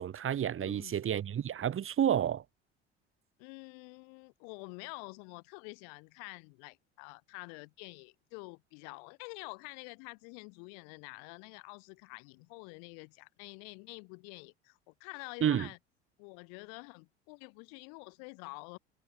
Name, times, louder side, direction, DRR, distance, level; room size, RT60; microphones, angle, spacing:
voice 1, 0.0-2.4 15.4-15.7, right 9 dB, 40° right, 3.7 m, -30 dB
voice 2, 0.6-1.2 3.4-15.8 16.2-18.8, left 40 dB or more, 60° left, 5.2 m, -48 dB
figure-of-eight pair, 60°, 33 cm